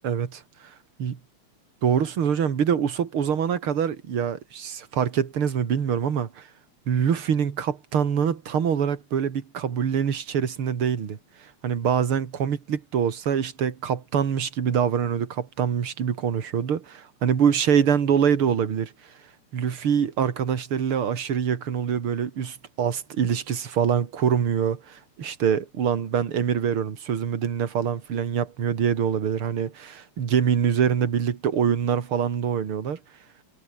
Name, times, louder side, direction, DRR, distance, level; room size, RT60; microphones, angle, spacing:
voice 1, 0.0-0.4 1.0-1.2 1.8-6.5 6.9-11.2 11.6-18.9 19.5-33.0, right 7 dB, 50° right, 2.7 m, -24 dB
omnidirectional pair, 3.3 m